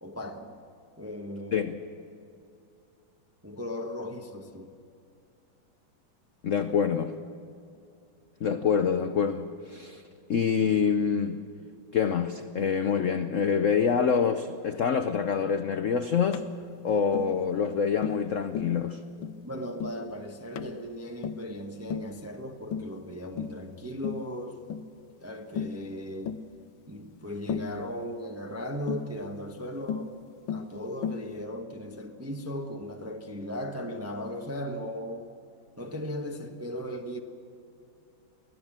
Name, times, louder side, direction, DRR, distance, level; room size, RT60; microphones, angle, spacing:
voice 1, 0.0-0.6 1.0-1.7 3.4-4.7 19.4-24.6 25.2-26.4 26.9-30.2 30.5-35.3 35.8-37.2, equal, 10° right, 0.7 m, -37 dB
voice 2, 6.4-7.2 8.4-10.0 10.3-11.4 11.9-16.4 16.8-19.0, left 6 dB, 65° left, 0.8 m, -26 dB
Tap, 16.3-16.5 17.1-17.3 18.0-18.3 18.6-18.8 19.2-19.4 19.8-20.0 20.6-20.8 21.2-21.5 21.9-22.2 22.7-23.0 23.4-23.6 24.0-24.3 24.7-24.9 25.6-25.8 26.3-26.5 27.5-27.8 28.9-29.1 29.9-30.1 30.5-30.7 31.0-31.3, left 7 dB, 80° left, 1.5 m, -34 dB
24.0 x 16.0 x 7.4 m
omnidirectional pair, 2.2 m